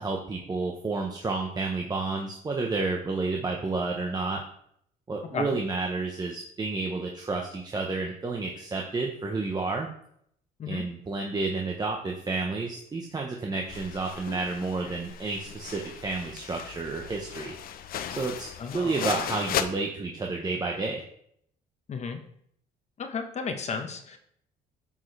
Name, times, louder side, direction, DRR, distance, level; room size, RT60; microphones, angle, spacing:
voice 1, 0.0-4.4 5.1-9.9 10.7-17.5 18.2-21.0, right 3 dB, 25° right, 0 dB, 1.0 m, -30 dB
sound 1, 13.7-19.6, left 10 dB, 60° left, 0.7 m, -36 dB
voice 2, 18.6-19.0 21.9-22.2 23.0-24.2, left 5 dB, 40° left, 6 dB, 1.2 m, -33 dB
9.0 x 6.4 x 3.3 m, 0.69 s
cardioid pair, 110°, 17 cm